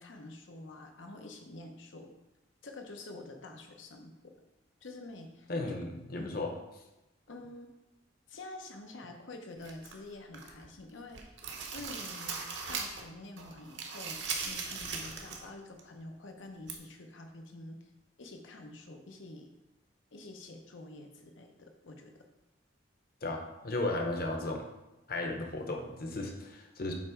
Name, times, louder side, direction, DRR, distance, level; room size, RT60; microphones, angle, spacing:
voice 1, 0.0-2.1 2.6-4.1 4.8-5.8 6.2-6.4 7.3-7.7 8.3-11.4 11.7-12.4 12.7-17.9 18.2-19.5 20.1-22.2, left 2 dB, 90° left, 4 dB, 0.8 m, -47 dB
voice 2, 5.5-6.5 23.2-24.7 25.1-26.9, left 2 dB, 50° left, 3 dB, 0.9 m, -35 dB
sound 1, 9.6-10.7 11.0-13.1 13.4-15.5 15.8-15.9 16.7-16.8, right 5 dB, 65° right, 0.9 m, -39 dB
7.1 x 3.1 x 4.5 m, 0.98 s
head